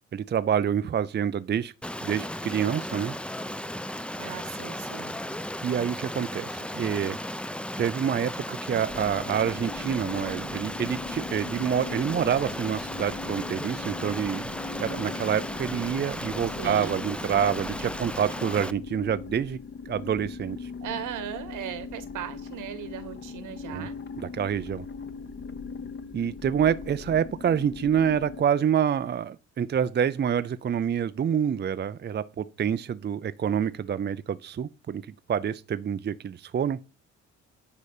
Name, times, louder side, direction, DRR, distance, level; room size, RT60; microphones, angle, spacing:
voice 1, 0.1-1.7 2.0-3.1 5.6-7.2 7.8-14.5 14.8-19.6 19.9-20.7 23.7-23.9 24.2-24.8 26.1-35.0 35.3-36.8, right 8 dB, 35° right, 0.6 m, -27 dB
Stream, 1.8-18.7, left 1 dB, 5° left, 0.7 m, -35 dB
voice 2, 4.2-5.1 16.6-17.1 20.8-24.0, right 9 dB, 85° right, 2.1 m, -37 dB
sound 1, 8.9-28.4, left 5 dB, 40° left, 1.3 m, -40 dB
10.0 x 4.1 x 6.6 m
cardioid pair, 90°, 30 cm